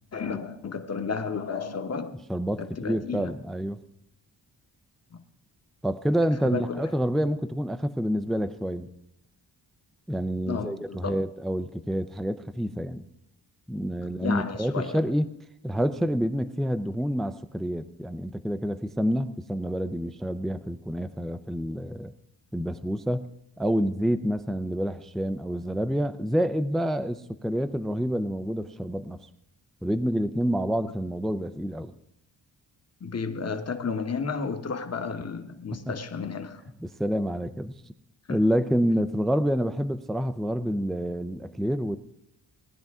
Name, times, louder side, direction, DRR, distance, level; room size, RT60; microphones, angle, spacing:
voice 1, 0.1-2.1 2.6-3.4 5.1-5.2 6.4-6.8 10.5-11.2 14.0-15.0 33.0-36.6 38.3-38.4, left 5 dB, 35° left, 1.1 m, -32 dB
voice 2, 2.3-3.8 5.8-8.9 10.1-13.0 13.7-15.3 15.6-22.1 22.5-23.3 23.6-29.2 29.8-31.9 35.9-36.0 36.8-37.7 38.3-42.0, equal, ahead, 0.4 m, -28 dB
18.5 x 10.5 x 3.6 m
cardioid pair, 105°, 43 cm